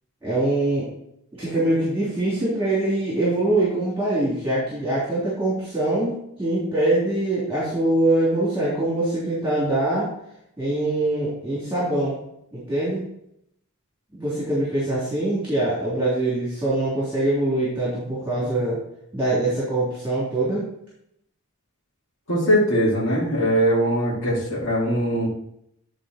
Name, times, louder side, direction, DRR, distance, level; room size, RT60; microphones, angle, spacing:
voice 1, 0.2-0.9 1.4-10.1 10.6-12.1 12.5-13.0 14.1-18.8 19.1-20.6, right 1 dB, 10° right, -9 dB, 3.3 m, -23 dB
voice 2, 22.3-25.3, equal, 60° left, -7 dB, 2.7 m, -21 dB
10.0 x 4.5 x 4.4 m, 0.76 s
head